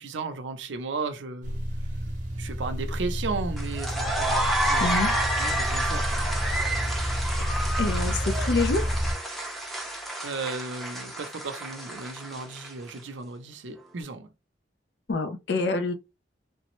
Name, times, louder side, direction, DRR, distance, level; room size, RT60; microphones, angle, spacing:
voice 1, 0.0-1.6 2.4-5.0 5.3-6.3 10.2-14.3, right 4 dB, 80° right, 0.5 m, -35 dB
sound 1, 1.4-9.1, equal, 45° right, 0.7 m, -30 dB
sound 2, 3.6-12.9, right 1 dB, ahead, 0.5 m, -30 dB
Fill (with liquid), 4.6-9.7, left 1 dB, 80° left, 1.8 m, -48 dB
voice 2, 7.8-9.0 15.1-15.9, left 3 dB, 65° left, 0.5 m, -26 dB
3.3 x 2.0 x 3.0 m
head